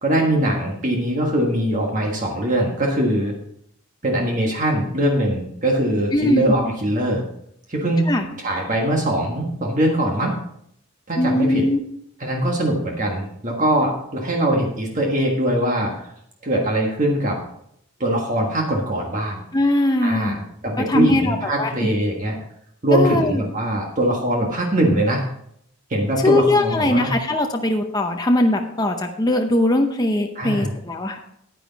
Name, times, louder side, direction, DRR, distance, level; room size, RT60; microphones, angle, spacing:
voice 1, 0.0-3.3 4.0-7.2 7.7-8.0 8.4-10.3 11.1-11.6 12.2-16.1 16.4-17.4 18.0-19.4 20.0-22.4 22.8-25.2 25.9-27.1 30.3-30.7, right 1 dB, 35° right, 0 dB, 1.5 m, -22 dB
voice 2, 6.1-6.4 8.1-8.3 11.2-11.8 19.5-20.4 20.8-21.7 22.9-23.4 26.2-31.2, left 1 dB, 15° left, 3 dB, 0.7 m, -20 dB
9.7 x 9.5 x 4.0 m, 0.72 s
head